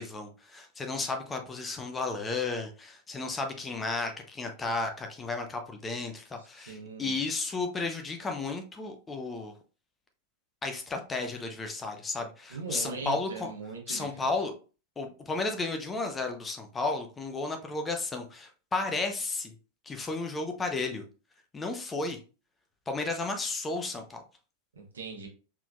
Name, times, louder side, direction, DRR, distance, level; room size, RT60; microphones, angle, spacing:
voice 1, 0.0-9.5 10.6-13.5 13.9-14.5 15.0-19.5 19.9-21.0 21.5-22.2 22.9-24.2, left 3 dB, 15° left, 4 dB, 0.8 m, -33 dB
voice 2, 6.7-7.1 12.5-14.3 24.7-25.3, right 4 dB, 70° right, 0 dB, 1.4 m, -40 dB
4.8 x 3.6 x 2.4 m, 0.35 s
figure-of-eight pair, 90°, 0 cm